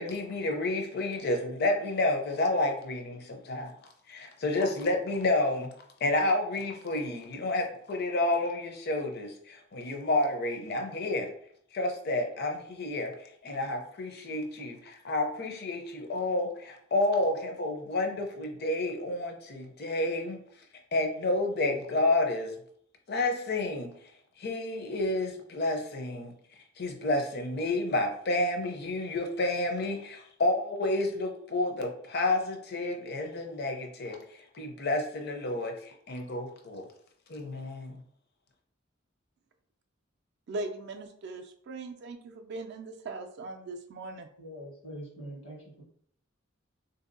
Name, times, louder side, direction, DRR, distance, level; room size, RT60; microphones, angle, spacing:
voice 1, 0.0-3.7 4.1-5.7 6.0-11.3 11.7-20.4 20.9-22.5 23.1-23.9 24.4-26.3 26.8-34.2 34.5-36.9 37.3-38.0, left 2 dB, 55° left, 4 dB, 0.6 m, -30 dB
voice 2, 40.5-44.3, right 2 dB, 55° right, 4 dB, 0.3 m, -39 dB
voice 3, 44.4-45.8, equal, 85° left, -3 dB, 1.3 m, -43 dB
3.5 x 2.7 x 2.6 m, 0.63 s
head